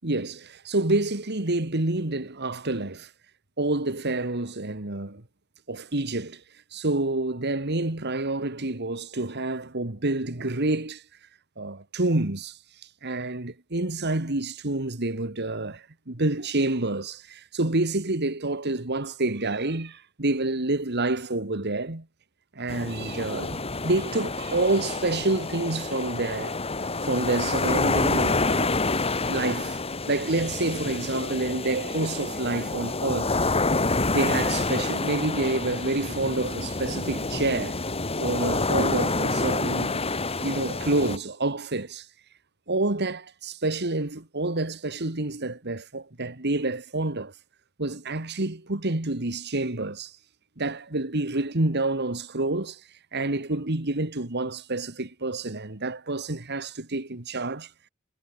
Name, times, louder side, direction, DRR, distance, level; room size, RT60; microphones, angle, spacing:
voice 1, 0.0-3.1 3.6-5.2 5.7-6.4 6.7-11.0 11.6-12.6 13.0-22.0 22.6-26.6 27.0-28.8 29.3-29.8 30.1-33.4 34.1-37.8 38.2-40.0 40.4-42.1 42.7-47.3 47.8-50.2 50.6-52.8 53.1-57.7, right 2 dB, 55° right, 2.2 m, -28 dB
sound 1, 22.7-41.2, left 3 dB, 30° left, 2.5 m, -28 dB
head